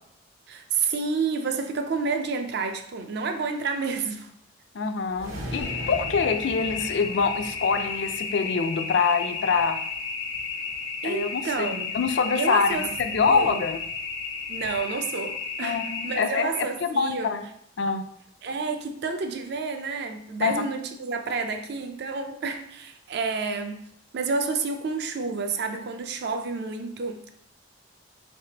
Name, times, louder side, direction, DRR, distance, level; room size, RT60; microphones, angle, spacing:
voice 1, 0.5-4.3 11.0-11.9 12.4-12.9 13.2-13.6 14.5-17.3 18.4-23.9 24.1-27.3, right 4 dB, 55° right, 0.4 m, -29 dB
voice 2, 4.7-9.8 11.0-11.7 11.9-13.8 15.6-17.4 17.8-18.0 20.4-20.6, left 5 dB, 60° left, 0.4 m, -25 dB
sound 1, 5.1-9.5, equal, 85° right, 1.0 m, -39 dB
sound 2, 5.6-16.2, left 5 dB, 85° left, 1.0 m, -33 dB
4.1 x 3.3 x 2.8 m
head